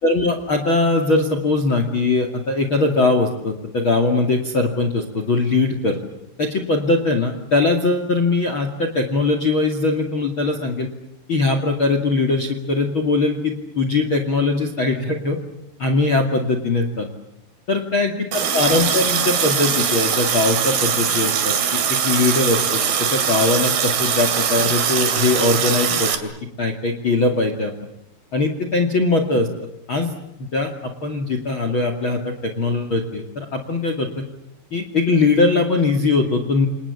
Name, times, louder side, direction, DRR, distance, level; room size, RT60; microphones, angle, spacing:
voice 1, 0.0-6.0 6.4-10.9 11.3-15.4 15.8-17.1 17.7-26.3 26.6-27.7 28.3-29.5 29.9-30.1 30.4-30.7 31.0-34.2 34.7-36.7, left 3 dB, 35° left, 6 dB, 2.4 m, -21 dB
Water tap faucet, 18.3-26.2, right 8 dB, 60° right, 4.3 m, -21 dB
29.0 x 28.0 x 7.2 m, 0.82 s
omnidirectional pair, 5.0 m